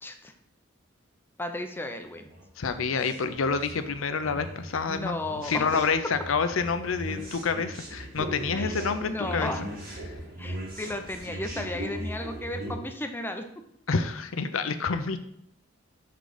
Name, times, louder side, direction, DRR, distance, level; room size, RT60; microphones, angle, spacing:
voice 1, 0.0-0.3 1.4-2.3 4.9-5.8 8.6-8.7 9.1-9.6 10.4-13.4, left 1 dB, 10° left, 6 dB, 0.5 m, -34 dB
sound 1, 2.3-12.7, right 1 dB, 50° right, 2.0 m, -38 dB
voice 2, 2.6-5.2 5.4-9.5 10.1-10.2 13.9-15.2, left 5 dB, 80° left, 10 dB, 0.6 m, -28 dB
6.8 x 3.8 x 4.9 m, 0.73 s
head